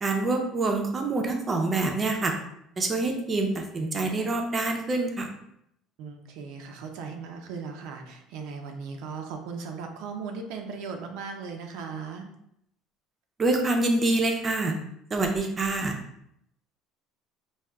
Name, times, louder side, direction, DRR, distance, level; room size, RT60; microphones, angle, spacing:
voice 1, 0.0-2.3 2.8-5.3 13.4-14.7 15.1-15.9, right 2 dB, 20° right, 3 dB, 0.5 m, -26 dB
voice 2, 6.0-12.3, right 5 dB, 75° right, 4 dB, 0.4 m, -37 dB
4.7 x 2.3 x 2.2 m, 0.75 s
cardioid pair, 150°, 0 cm